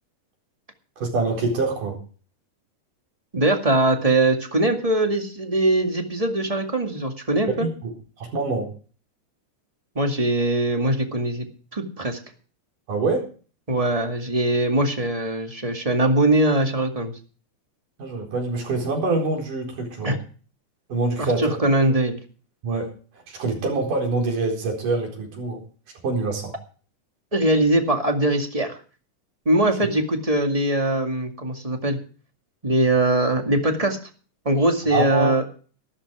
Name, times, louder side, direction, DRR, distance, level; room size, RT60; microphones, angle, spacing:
voice 1, 1.0-2.0 7.5-8.7 12.9-13.3 18.0-20.2 20.9-21.6 22.6-22.9 23.3-25.6 26.0-26.5 34.9-35.4, right 3 dB, 90° right, 2 dB, 6.0 m, -25 dB
voice 2, 3.3-7.7 9.9-11.5 11.7-12.2 13.7-17.1 20.0-20.2 21.2-22.2 27.3-28.8 29.4-32.0 32.6-34.0 34.4-35.4, right 1 dB, 15° right, 5 dB, 1.6 m, -21 dB
13.0 x 13.0 x 4.9 m, 0.39 s
omnidirectional pair, 3.6 m